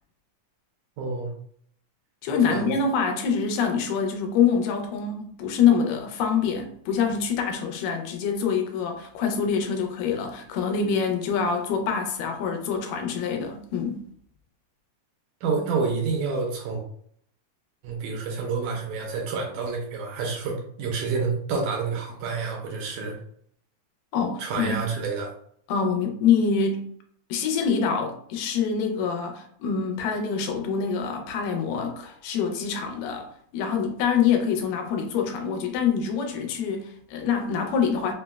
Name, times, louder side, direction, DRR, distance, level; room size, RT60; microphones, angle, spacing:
voice 1, 1.0-1.3 2.5-2.7 15.4-16.8 17.8-23.2 24.4-25.3, right 4 dB, 80° right, 1.9 m, -28 dB
voice 2, 2.2-14.1 24.1-24.7 25.7-26.9 27.3-33.3 33.5-38.1, left 6 dB, 85° left, 2.2 m, -25 dB
5.4 x 2.1 x 2.2 m
omnidirectional pair, 3.7 m